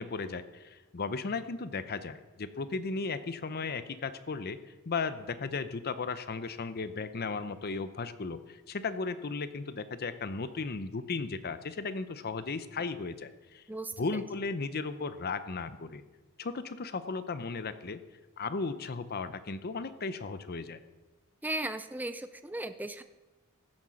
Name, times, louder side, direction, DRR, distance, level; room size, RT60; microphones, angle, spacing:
voice 1, 0.0-4.6 4.9-13.6 14.0-16.0 16.4-18.0 18.4-20.8, left 4 dB, 45° left, 12 dB, 0.7 m, -35 dB
voice 2, 13.7-14.0 21.4-23.0, right 1 dB, 10° right, 10 dB, 0.4 m, -36 dB
16.0 x 8.8 x 6.3 m, 1.2 s
head